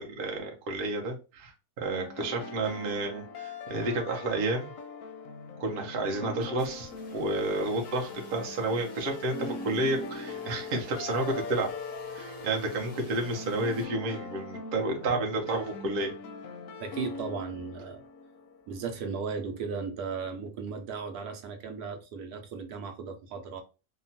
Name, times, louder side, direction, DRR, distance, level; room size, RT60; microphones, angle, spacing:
voice 1, 0.0-4.7 5.6-11.7 12.1-16.1, right 2 dB, 50° right, 0.7 m, -31 dB
sound 1, 1.9-18.8, left 3 dB, 70° left, 0.9 m, -41 dB
sound 2, 6.4-13.9, left 1 dB, 45° left, 0.6 m, -51 dB
voice 2, 16.8-18.0 18.7-23.6, right 5 dB, 75° right, 1.1 m, -36 dB
2.9 x 2.2 x 2.7 m
omnidirectional pair, 1.6 m